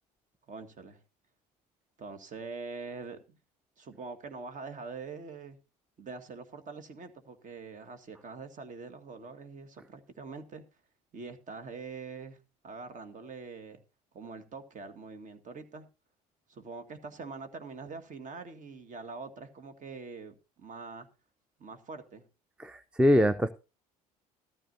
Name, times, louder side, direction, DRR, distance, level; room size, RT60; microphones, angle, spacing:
voice 1, 0.5-1.0 2.0-3.4 3.8-5.6 6.0-10.6 11.1-12.4 12.6-13.8 14.1-15.9 16.5-21.1 21.6-22.2, right 4 dB, 40° right, 9 dB, 1.9 m, -44 dB
voice 2, 22.6-23.5, equal, 5° right, 12 dB, 0.6 m, -23 dB
14.0 x 13.5 x 2.7 m, 0.30 s
hypercardioid pair, 65°, 20 cm